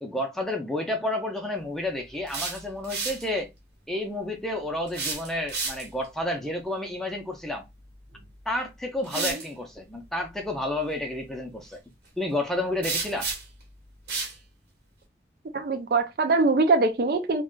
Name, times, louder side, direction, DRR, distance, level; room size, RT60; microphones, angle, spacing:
voice 1, 0.0-3.5 3.9-7.7 8.5-11.8 12.2-13.3, left 1 dB, ahead, 0.5 m, -30 dB
sound 1, 2.1-3.3 4.9-6.0 8.1-8.3 9.0-9.5 12.8-13.6 14.1-14.4, right 4 dB, 70° right, 1.0 m, -31 dB
voice 2, 15.5-17.4, right 3 dB, 55° right, 0.4 m, -23 dB
2.4 x 2.2 x 3.6 m
head